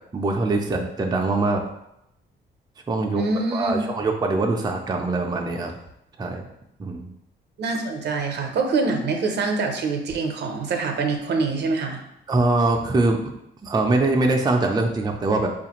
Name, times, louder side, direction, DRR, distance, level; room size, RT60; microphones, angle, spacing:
voice 1, 0.1-1.6 2.9-3.2 3.5-5.7 6.2-6.4 6.8-7.1 12.3-13.2 13.6-15.5, right 2 dB, 20° right, 2 dB, 0.4 m, -22 dB
voice 2, 3.1-3.8 7.6-12.0, right 3 dB, 60° right, 4 dB, 0.6 m, -25 dB
4.6 x 2.5 x 2.9 m, 0.80 s
cardioid pair, 90°, 20 cm